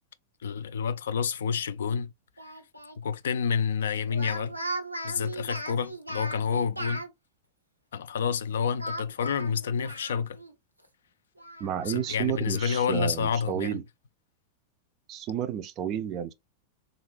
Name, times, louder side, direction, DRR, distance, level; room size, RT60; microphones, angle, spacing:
voice 1, 0.4-2.1 3.0-4.6 5.0-7.0 7.9-10.4 11.9-13.8, left 6 dB, 65° left, 0.3 m, -29 dB
Speech, 2.4-3.0 4.1-7.1 8.8-10.5 10.8-10.9 11.4-12.8, right 1 dB, 90° right, 0.6 m, -38 dB
voice 2, 11.6-13.8 15.1-16.3, right 10 dB, 35° right, 0.4 m, -31 dB
3.6 x 2.4 x 3.2 m
figure-of-eight pair, 90°, 0 cm